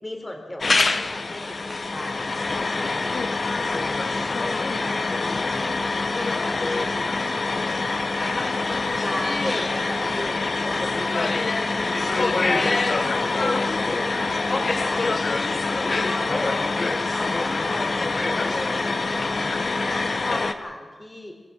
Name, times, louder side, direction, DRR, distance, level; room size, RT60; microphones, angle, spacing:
voice 1, 0.0-2.3 2.8-3.3 6.6-6.9 9.0-10.4 10.6-12.1 12.5-15.0 16.0-16.6 17.1-19.2 19.8-20.1 20.4-21.3, left 1 dB, 25° left, 4 dB, 4.3 m, -35 dB
sound 1, 0.6-20.5, left 3 dB, 55° left, 1.5 m, -25 dB
voice 2, 3.1-3.8 4.3-5.5 13.0-13.4 16.7-17.0, left 3 dB, 75° left, 2 dB, 2.8 m, -36 dB
25.0 x 15.0 x 9.3 m, 1.4 s
wide cardioid pair, 90°, 0 cm